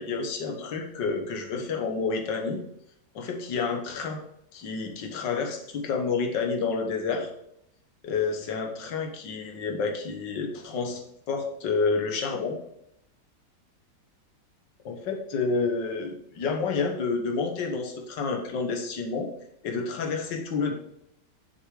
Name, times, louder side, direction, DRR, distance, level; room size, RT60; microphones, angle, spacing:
voice 1, 0.0-2.6 3.2-4.2 4.5-7.3 8.0-12.6 14.9-19.3 19.6-20.7, left 4 dB, 70° left, 3 dB, 1.9 m, -29 dB
7.3 x 6.8 x 4.9 m, 0.77 s
omnidirectional pair, 2.0 m